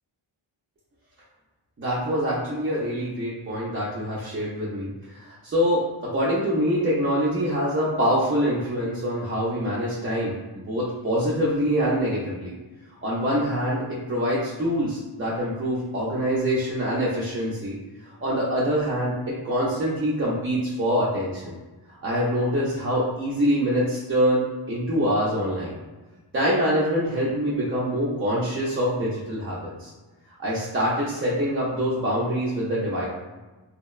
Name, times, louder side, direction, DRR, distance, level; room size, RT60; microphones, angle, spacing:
voice 1, 1.8-12.5 13.0-17.8 18.2-21.5 22.0-25.7 26.3-29.9 30.4-33.1, equal, 30° right, -7 dB, 0.4 m, -25 dB
2.7 x 2.0 x 2.3 m, 1.2 s
wide cardioid pair, 95°, 50 cm